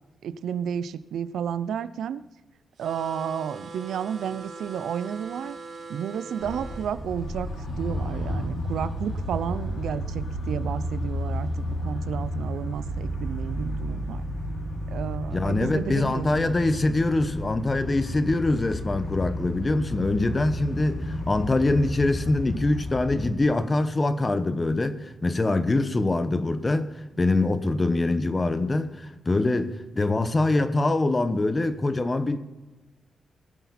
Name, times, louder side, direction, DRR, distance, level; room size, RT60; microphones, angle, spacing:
voice 1, 0.2-2.2 2.8-5.6 5.9-14.2 14.9-16.5, right 8 dB, 85° right, 0.5 m, -32 dB
sound 1, 2.8-6.9, right 3 dB, 70° right, 3.8 m, -41 dB
sound 2, 6.4-23.3, equal, 75° left, 4.6 m, -32 dB
voice 2, 15.3-26.9 27.2-32.4, left 2 dB, 25° left, 1.0 m, -24 dB
20.0 x 8.2 x 4.3 m
cardioid pair, 105°, 0 cm